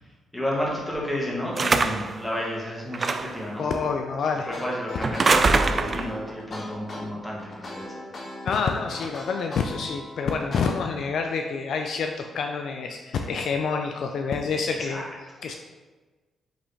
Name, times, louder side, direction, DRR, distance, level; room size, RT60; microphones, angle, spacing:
voice 1, 0.3-3.6 4.5-8.0 14.7-15.1, equal, 10° left, -4 dB, 1.5 m, -31 dB
sound 1, 1.6-2.2 2.9-3.4 5.0-6.2, right 3 dB, 40° right, 0.3 m, -23 dB
voice 2, 3.6-4.5 8.4-15.0 15.4-15.5, left 5 dB, 70° left, 4 dB, 0.3 m, -27 dB
sound 2, 4.4-10.6, left 1 dB, 50° left, 0.9 m, -38 dB
5.0 x 3.1 x 3.2 m, 1.3 s
supercardioid pair, 65°, 0 cm